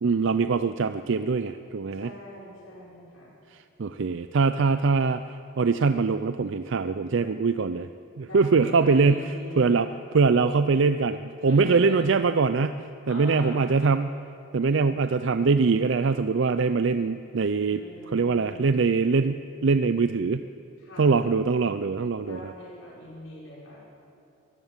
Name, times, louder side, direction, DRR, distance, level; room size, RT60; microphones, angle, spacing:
voice 1, 0.0-2.1 3.8-5.2 5.6-7.9 8.2-9.9 10.1-12.7 13.1-14.2 14.5-20.4 21.0-22.4, right 4 dB, 60° right, 11 dB, 0.5 m, -23 dB
voice 2, 1.9-3.3 8.2-9.9 11.4-12.1 13.1-13.7 17.6-18.7 20.8-21.2 22.2-23.8, left 1 dB, 80° left, -6 dB, 5.4 m, -42 dB
23.5 x 15.5 x 7.4 m, 2.8 s
head